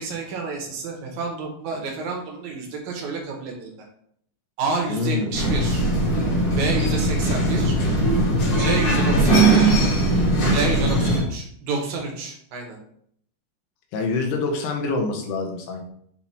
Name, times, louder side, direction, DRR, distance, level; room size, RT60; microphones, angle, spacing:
voice 1, 0.0-3.7 4.6-5.8 6.6-7.8 8.6-9.7 10.5-12.8, right 4 dB, 60° right, 1 dB, 2.3 m, -29 dB
voice 2, 4.9-5.3 13.9-15.8, left 3 dB, 75° left, 3 dB, 3.1 m, -25 dB
sound 1, 5.3-11.2, right 1 dB, 55° left, 3.3 m, -20 dB
7.8 x 4.3 x 4.3 m, 0.66 s
omnidirectional pair, 4.8 m